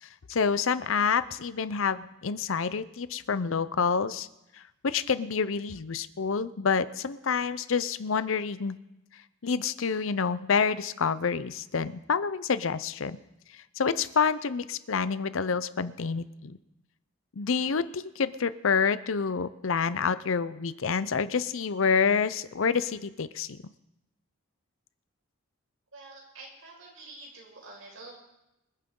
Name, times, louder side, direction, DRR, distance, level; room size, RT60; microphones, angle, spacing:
voice 1, 0.3-4.3 4.8-8.8 9.4-13.2 13.8-16.6 17.4-23.6, left 5 dB, 70° left, 15 dB, 0.6 m, -28 dB
voice 2, 25.9-28.1, right 2 dB, 75° right, -2 dB, 5.3 m, -47 dB
26.5 x 9.1 x 3.8 m, 0.91 s
head